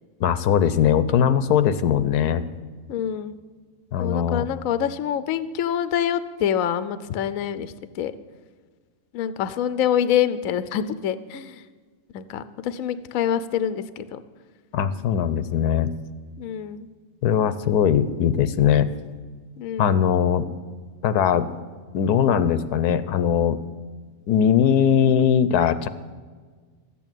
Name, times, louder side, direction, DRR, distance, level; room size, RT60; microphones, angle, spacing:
voice 1, 0.2-2.5 3.9-4.4 14.7-15.9 17.2-18.9 19.8-20.5 21.0-21.5 21.9-23.6 24.3-25.9, left 8 dB, 85° left, 13 dB, 1.2 m, -20 dB
voice 2, 2.9-3.4 4.0-8.1 9.1-11.6 12.1-14.2 16.4-16.9 19.6-20.0, left 9 dB, 65° left, 13 dB, 1.0 m, -26 dB
13.5 x 8.5 x 9.0 m, 1.5 s
omnidirectional pair, 1.6 m